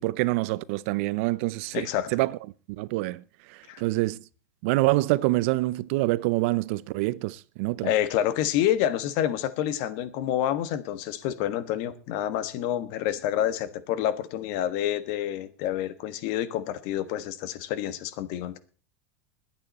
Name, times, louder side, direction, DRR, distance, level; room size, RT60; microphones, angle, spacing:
voice 1, 0.0-2.4 2.7-3.2 3.5-4.2 4.6-7.9, right 20 dB, 60° right, 0.6 m, -26 dB
voice 2, 1.7-2.1 3.7-3.8 7.8-18.6, left 11 dB, 55° left, 1.3 m, -28 dB
21.0 x 9.0 x 4.2 m
supercardioid pair, 135°, 8 cm